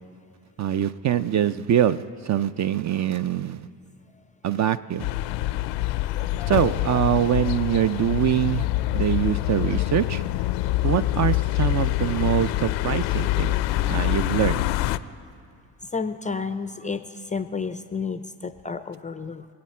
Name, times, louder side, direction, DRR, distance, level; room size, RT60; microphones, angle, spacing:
voice 1, 0.6-3.7 4.4-5.1 6.5-8.7 8.9-10.2 10.8-13.5 13.9-14.7, right 10 dB, 40° right, 14 dB, 0.5 m, -24 dB
sound 1, 5.0-15.0, left 16 dB, 85° left, 0.5 m, -25 dB
voice 2, 15.8-19.5, left 5 dB, 20° left, 11 dB, 0.4 m, -31 dB
23.5 x 8.6 x 4.4 m, 2.2 s
supercardioid pair, 80°, 43 cm